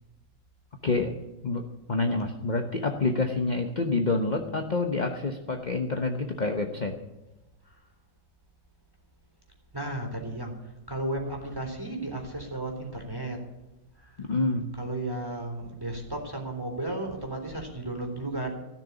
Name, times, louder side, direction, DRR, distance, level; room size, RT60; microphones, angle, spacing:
voice 1, 1.9-6.9 14.2-14.6, left 3 dB, 35° left, 3 dB, 0.8 m, -27 dB
voice 2, 9.7-13.4 14.0-14.3 14.8-18.5, right 1 dB, 10° right, 2 dB, 3.7 m, -34 dB
16.5 x 6.8 x 9.9 m, 1.0 s
omnidirectional pair, 2.2 m